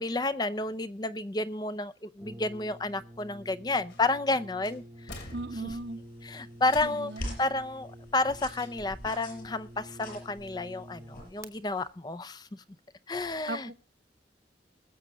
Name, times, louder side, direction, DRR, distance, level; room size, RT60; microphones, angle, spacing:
voice 1, 0.0-5.3 5.6-5.7 6.2-12.6 13.1-13.7, left 2 dB, 25° left, 12 dB, 0.5 m, -31 dB
Brass instrument, 2.2-11.5, equal, 15° right, 0.9 m, -49 dB
sound 1, 3.9-4.3 4.6-6.0 6.6-7.4 8.5-9.1 9.4-9.5, left 2 dB, 80° left, 2.8 m, -48 dB
voice 2, 5.3-6.0 6.8-7.4 13.5-13.7, right 2 dB, 65° right, 10 dB, 0.9 m, -37 dB
sound 2, 5.7-11.9, equal, 55° left, 6.1 m, -45 dB
20.0 x 7.4 x 3.8 m, 0.31 s
head